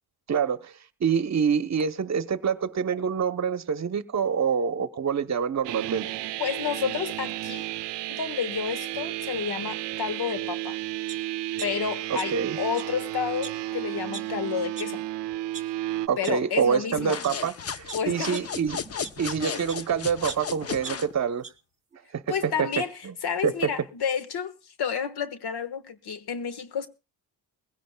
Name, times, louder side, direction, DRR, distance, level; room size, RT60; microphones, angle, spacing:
voice 1, 0.3-0.7 1.0-6.1 12.1-12.6 16.1-18.8 19.2-21.4 22.1-23.1 23.4-23.7, right 7 dB, 40° right, 0.9 m, -26 dB
sound 1, 5.6-16.1, right 15 dB, 85° right, 0.6 m, -33 dB
voice 2, 6.4-7.7 8.1-10.8 11.6-15.0 16.2-17.2 17.9-18.4 22.3-22.9 23.2-24.5 24.8-26.9, left 7 dB, 65° left, 1.5 m, -30 dB
sound 2, 11.1-11.2 11.6-12.5 12.7-12.8 13.4-13.5 14.1-14.2 14.8-14.9 15.3-15.6 16.2-16.3 17.0-17.3 17.9-19.8 20.3-21.5 21.9-22.0, right 5 dB, 20° right, 2.1 m, -40 dB
sound 3, 16.9-21.1, left 6 dB, 35° left, 0.8 m, -35 dB
21.0 x 16.5 x 2.3 m
cardioid pair, 110°, 41 cm